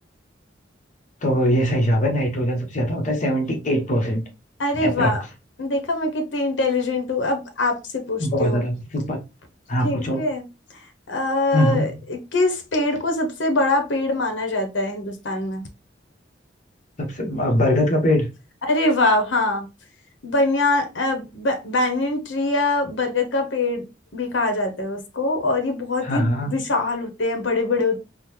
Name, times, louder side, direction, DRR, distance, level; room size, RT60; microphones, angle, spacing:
voice 1, 1.2-4.2 4.7-5.2 8.2-9.2 9.7-10.2 11.5-12.0 17.0-18.3 26.0-26.6, equal, 40° left, 0.8 m, -22 dB
voice 2, 4.6-5.2 5.6-8.7 9.8-10.4 11.1-15.7 18.6-19.7 20.2-23.8 24.1-28.0, left 2 dB, 75° left, 0.7 m, -23 dB
3.7 x 2.0 x 2.9 m
head